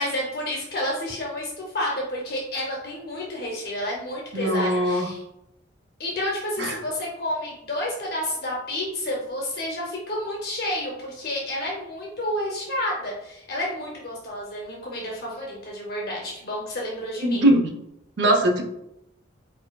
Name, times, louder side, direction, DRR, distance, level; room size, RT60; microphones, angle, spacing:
voice 1, 0.0-5.2 6.0-17.4, left 1 dB, 50° left, -3 dB, 0.6 m, -30 dB
voice 2, 4.3-5.1 6.6-6.8 17.2-17.7 18.2-18.6, right 1 dB, 65° right, 4 dB, 0.5 m, -21 dB
4.3 x 2.5 x 2.2 m, 0.84 s
head